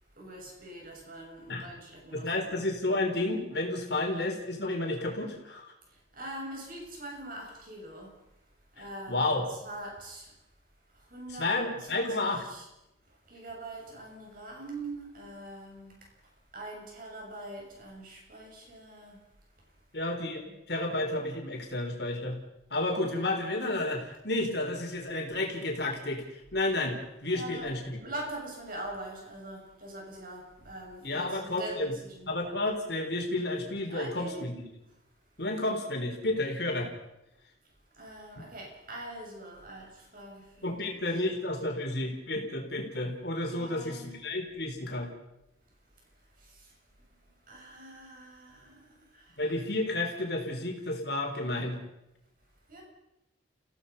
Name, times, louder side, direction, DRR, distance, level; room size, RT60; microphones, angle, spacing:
voice 1, 0.2-2.6 5.9-8.2 8.7-9.3 9.6-10.3 10.9-12.7 13.1-16.0 16.5-19.2 20.4-20.6 27.3-32.3 33.9-34.5 37.9-41.0 41.7-42.2 43.5-44.3 46.4-46.7 47.5-49.4 52.7-52.8, right 1 dB, 45° right, 0 dB, 7.0 m, -43 dB
voice 2, 2.1-5.7 8.8-9.5 11.4-12.5 19.9-22.4 22.7-26.2 26.5-27.0 27.2-28.0 31.0-31.9 32.3-34.6 35.4-36.9 40.6-45.1 49.4-51.8, left 2 dB, 55° left, 2 dB, 4.2 m, -31 dB
30.0 x 17.0 x 5.6 m, 0.88 s
head